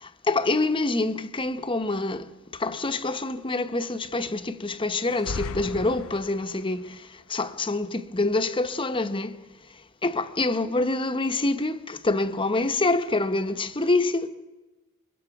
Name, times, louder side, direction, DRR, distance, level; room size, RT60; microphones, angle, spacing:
voice 1, 0.0-9.4 10.0-14.3, left 2 dB, 25° left, 1.0 m, -26 dB
sound 1, 5.0-6.7, left 3 dB, 80° left, 0.7 m, -36 dB
26.5 x 22.5 x 6.0 m
head